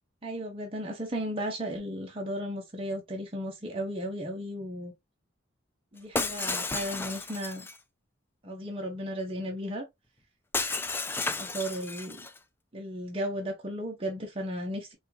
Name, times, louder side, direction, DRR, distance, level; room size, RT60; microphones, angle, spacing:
voice 1, 0.2-4.9 5.9-7.7 8.4-9.8 11.3-12.3 12.7-14.9, equal, 30° right, 0.7 m, -35 dB
Shatter, 6.1-7.8 10.5-12.4, left 3 dB, 10° left, 0.3 m, -32 dB
4.3 x 2.3 x 2.7 m
head